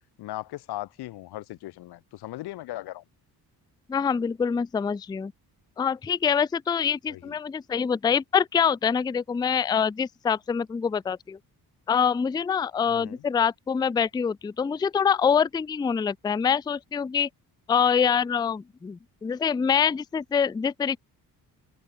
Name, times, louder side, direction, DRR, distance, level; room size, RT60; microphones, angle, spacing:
voice 1, 0.2-3.0 7.1-7.4 12.9-13.2, left 16 dB, 80° left, 0.8 m, -38 dB
voice 2, 3.9-5.3 5.8-11.4 11.9-17.3 17.7-21.0, left 7 dB, 10° left, 0.3 m, -25 dB
cardioid pair, 85°, 38 cm